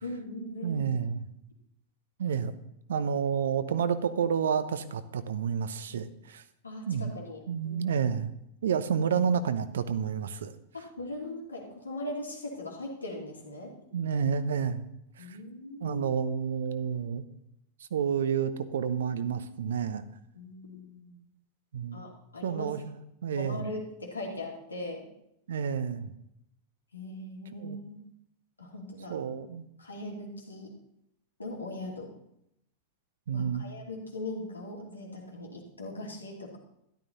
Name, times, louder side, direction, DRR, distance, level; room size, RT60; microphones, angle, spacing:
voice 1, 0.0-0.9 6.6-7.9 10.7-13.7 15.2-16.1 20.3-21.2 21.9-22.7 23.3-25.1 26.9-28.0 28.6-29.2 29.8-30.7 31.4-32.1 33.3-36.6, left 1 dB, 80° left, -1 dB, 2.8 m, -40 dB
voice 2, 0.6-1.3 2.2-2.5 2.9-6.4 6.9-7.2 7.5-8.3 8.6-10.5 13.9-14.8 15.2-15.4 15.8-17.2 17.9-20.0 21.7-22.0 22.4-23.6 25.5-26.1 27.6-27.8 29.1-29.7 33.3-33.7, right 7 dB, 65° right, 12 dB, 0.9 m, -30 dB
13.0 x 12.0 x 4.1 m, 0.78 s
figure-of-eight pair, 90°, 0 cm